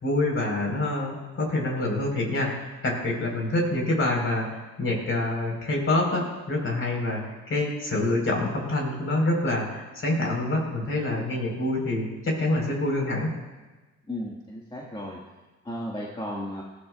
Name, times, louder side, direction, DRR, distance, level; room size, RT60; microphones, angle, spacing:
voice 1, 0.0-13.3, left 2 dB, 45° left, 0 dB, 4.8 m, -26 dB
voice 2, 14.1-15.2 15.6-16.6, left 1 dB, 15° left, -4 dB, 1.9 m, -34 dB
19.0 x 15.5 x 2.5 m, 1.2 s
cardioid pair, 90°, 30 cm